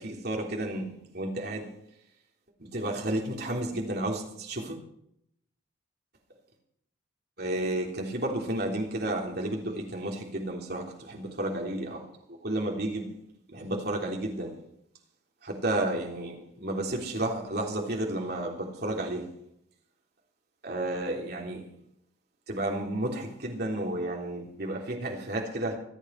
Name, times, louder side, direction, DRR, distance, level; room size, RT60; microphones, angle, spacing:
voice 1, 0.0-1.7 2.6-4.8 7.4-12.0 12.4-13.1 13.5-14.6 15.4-19.3 20.6-21.6 22.5-25.8, right 1 dB, 50° right, 0 dB, 3.6 m, -32 dB
25.5 x 9.1 x 4.8 m, 0.75 s
head